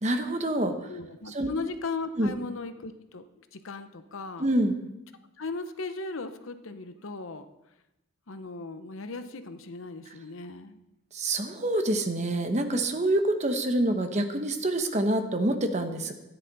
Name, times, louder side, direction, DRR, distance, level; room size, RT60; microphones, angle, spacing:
voice 1, 0.0-0.9 1.3-1.5 2.2-2.3 4.4-4.7 11.1-16.1, right 1 dB, 35° right, 6 dB, 1.0 m, -26 dB
voice 2, 0.9-4.5 5.4-7.5 8.3-10.8, left 3 dB, 80° left, 9 dB, 0.8 m, -37 dB
13.5 x 10.0 x 4.0 m, 0.92 s
head